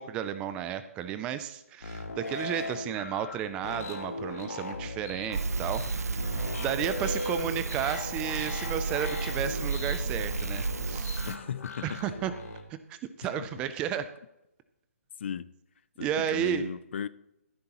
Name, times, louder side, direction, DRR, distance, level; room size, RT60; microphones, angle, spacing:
voice 1, 0.0-11.2 11.8-12.3 12.7-12.8 13.2-14.0 16.0-16.7, right 9 dB, 10° right, 0.4 m, -33 dB
sound 1, 1.8-12.6, left 2 dB, 85° left, 2.0 m, -38 dB
Crackle, 5.3-11.4, right 4 dB, 90° right, 0.6 m, -33 dB
sound 2, 6.1-11.7, left 1 dB, 25° left, 3.8 m, -52 dB
voice 2, 11.3-12.0 13.2-13.5 15.2-15.5 16.0-17.1, left 8 dB, 50° left, 0.4 m, -37 dB
14.0 x 11.5 x 3.0 m
hypercardioid pair, 160°, 8 cm